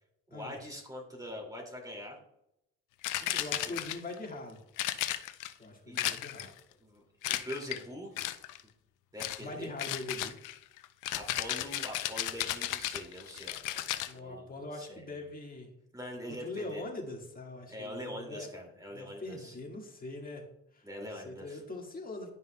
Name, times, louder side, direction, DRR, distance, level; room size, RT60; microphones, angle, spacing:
voice 1, 0.3-2.2 3.2-3.8 5.9-6.0 6.8-8.1 9.1-9.7 11.1-15.2 15.9-16.8 17.7-19.6 20.8-21.6, equal, 10° right, 1 dB, 2.3 m, -44 dB
sound 1, 3.0-4.2 4.8-5.5 6.0-6.6 7.2-7.8 8.2-8.6 9.2-9.4 9.8-14.1, left 14 dB, 90° left, 0.5 m, -34 dB
voice 2, 3.4-4.6 5.6-6.5 9.4-10.4 14.1-15.7 16.3-18.5 18.9-20.5 20.7-20.9 21.1-22.3, left 2 dB, 30° left, 1 dB, 1.8 m, -42 dB
11.0 x 5.4 x 2.2 m, 0.80 s
cardioid pair, 90°, 30 cm